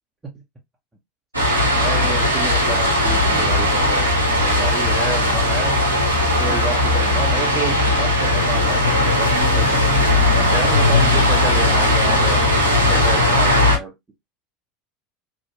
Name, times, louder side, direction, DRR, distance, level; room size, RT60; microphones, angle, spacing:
sound 1, 1.3-13.8, left 1 dB, 85° right, 0.7 m, -17 dB
voice 1, 1.8-4.1 4.4-5.8 6.3-9.9 10.3-12.4 12.9-14.0, right 2 dB, 15° right, 0.8 m, -30 dB
2.8 x 2.3 x 2.8 m
figure-of-eight pair, 75°, 0 cm